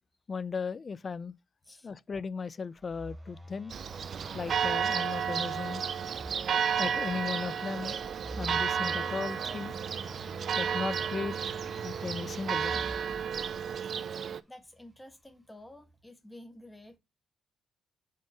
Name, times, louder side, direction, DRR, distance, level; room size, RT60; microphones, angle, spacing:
voice 1, 0.3-1.3 1.8-3.7 4.3-5.8 6.8-8.0 8.4-9.7 10.5-12.8, left 5 dB, 35° left, 0.4 m, -36 dB
Telephone, 2.8-6.8 8.0-13.7, right 2 dB, 15° right, 0.8 m, -46 dB
Church bell, 3.7-14.4, right 7 dB, 55° right, 0.4 m, -32 dB
voice 2, 13.9-17.0, left 1 dB, 10° left, 1.2 m, -52 dB
5.2 x 3.7 x 5.6 m
cardioid pair, 90°, 0 cm